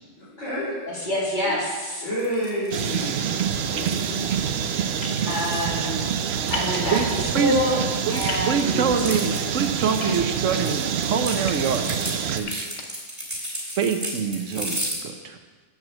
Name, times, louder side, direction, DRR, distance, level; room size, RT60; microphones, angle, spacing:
voice 1, 0.2-0.8 1.4-1.6 2.0-4.6, equal, 80° left, -11 dB, 4.0 m, -31 dB
voice 2, 0.9-2.0 5.3-6.0 6.5-7.8 8.1-9.1, left 1 dB, 40° left, -6 dB, 2.9 m, -26 dB
sound 1, 2.2-4.3 5.1-7.6 7.9-15.0, equal, 15° right, 2.5 m, -35 dB
sound 2, 2.7-12.4, right 8 dB, 65° right, 0.8 m, -26 dB
sound 3, 5.0-5.2 6.5-6.8 8.3-8.5 10.0-10.6 11.2-11.5 12.4-12.8, left 4 dB, 60° left, 1.2 m, -33 dB
voice 3, 6.9-7.6 8.1-12.7 13.8-15.4, right 6 dB, 85° right, 7 dB, 1.2 m, -26 dB
8.7 x 7.6 x 6.3 m, 1.4 s
omnidirectional pair, 1.3 m